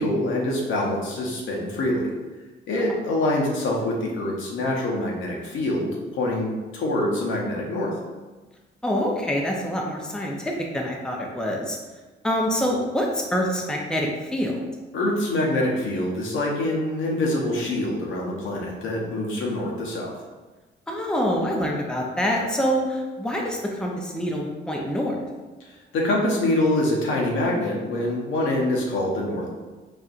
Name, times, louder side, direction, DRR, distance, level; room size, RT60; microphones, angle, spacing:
voice 1, 0.0-2.1 2.7-7.9 14.9-20.1 25.9-29.5, left 1 dB, 80° left, -2 dB, 0.8 m, -25 dB
voice 2, 8.8-11.8 12.2-14.6 20.9-25.2, equal, 5° left, -1 dB, 0.5 m, -26 dB
4.2 x 2.5 x 2.4 m, 1.2 s
cardioid pair, 90°, 20 cm